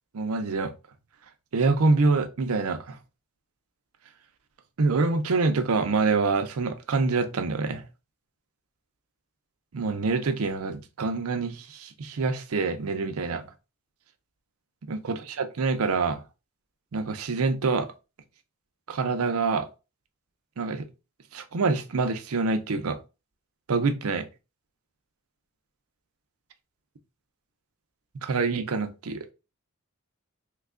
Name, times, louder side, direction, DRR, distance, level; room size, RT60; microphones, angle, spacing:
voice 1, 0.1-0.7 1.5-3.0 4.8-7.8 9.7-13.4 14.9-16.2 16.9-17.9 18.9-19.7 20.6-20.9 21.3-23.0 23.7-24.3 28.2-29.3, right 4 dB, 80° right, 0.6 m, -26 dB
3.2 x 2.3 x 3.6 m
head